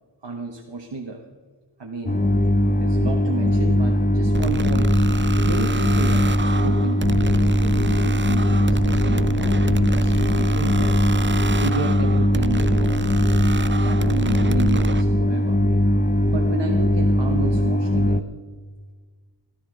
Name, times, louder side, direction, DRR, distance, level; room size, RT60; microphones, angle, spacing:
voice 1, 0.2-1.2 1.8-2.2 2.8-4.9 5.5-10.9 11.6-13.2 13.7-15.6 16.3-18.3, right 3 dB, 55° right, 2 dB, 1.3 m, -31 dB
sound 1, 2.1-18.2, left 1 dB, 15° left, 0.6 m, -20 dB
sound 2, 4.3-15.0, right 4 dB, 25° right, 0.5 m, -28 dB
17.0 x 12.5 x 3.9 m, 1.4 s
wide cardioid pair, 60°, 49 cm